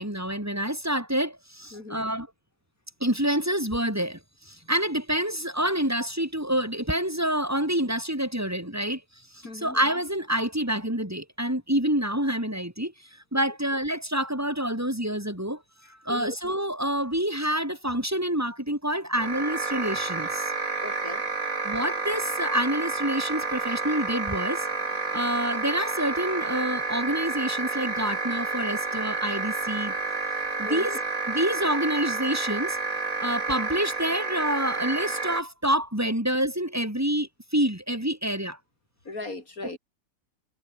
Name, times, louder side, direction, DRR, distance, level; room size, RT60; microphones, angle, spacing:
voice 1, 0.0-2.3 3.0-9.0 9.3-12.9 13.3-15.6 15.9-20.5 21.6-24.7 25.1-29.9 30.6-31.0 31.3-32.8 33.2-38.6, right 1 dB, 10° right, 5.5 m, -27 dB
voice 2, 1.7-2.0 9.4-9.8 16.1-16.3 20.8-21.2 30.6-31.0 39.1-39.8, left 2 dB, 80° left, 5.3 m, -37 dB
sound 1, 19.2-35.4, right 3 dB, 70° right, 3.6 m, -30 dB
omnidirectional pair, 1.5 m